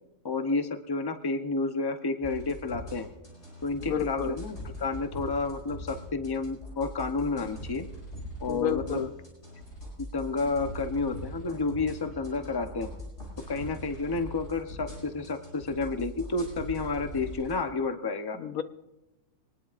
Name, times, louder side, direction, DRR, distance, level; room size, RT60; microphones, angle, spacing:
voice 1, 0.2-3.1 3.6-7.8 8.4-9.0 10.0-12.9 13.5-18.4, left 3 dB, 20° left, 7 dB, 0.7 m, -30 dB
sound 1, 2.2-17.6, equal, 55° left, 5.9 m, -42 dB
voice 2, 3.8-4.4 8.5-9.1 18.3-18.6, left 8 dB, 85° left, 10 dB, 1.3 m, -30 dB
24.0 x 19.5 x 2.6 m, 0.95 s
omnidirectional pair, 1.5 m